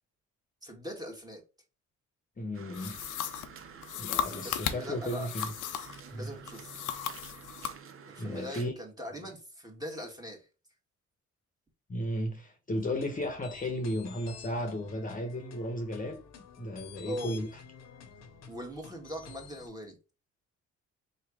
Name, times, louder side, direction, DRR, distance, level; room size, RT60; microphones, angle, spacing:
voice 1, 0.6-1.4 3.9-5.3 6.1-6.7 8.1-10.5 17.0-17.4 18.5-20.0, equal, 10° right, 1.7 m, -41 dB
voice 2, 2.4-3.0 4.0-5.5 6.1-6.3 8.2-8.7 11.9-16.2 16.6-17.5, equal, 25° left, 1.0 m, -34 dB
sound 1, 2.5-8.7, right 7 dB, 45° right, 0.8 m, -50 dB
sound 2, 2.7-6.0 6.5-7.8, left 9 dB, 80° left, 0.7 m, -36 dB
sound 3, 12.7-19.7, left 7 dB, 60° left, 1.0 m, -50 dB
4.0 x 3.2 x 3.5 m
cardioid pair, 90°, 30 cm